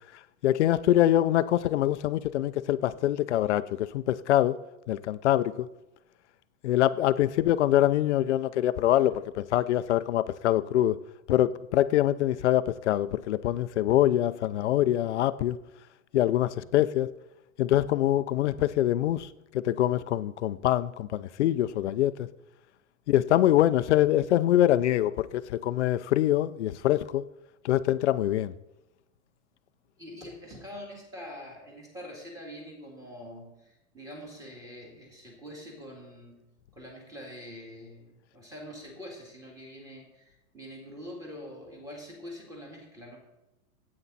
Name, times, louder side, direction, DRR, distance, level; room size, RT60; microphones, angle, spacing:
voice 1, 0.4-4.6 4.9-5.7 6.6-11.0 11.3-15.6 16.1-17.1 17.6-22.3 23.1-27.2 27.6-28.5, left 13 dB, 50° left, 0.5 m, -24 dB
voice 2, 30.0-36.4 36.7-43.2, equal, 10° right, 2.0 m, -44 dB
15.0 x 8.7 x 4.0 m
supercardioid pair, 165°, 44 cm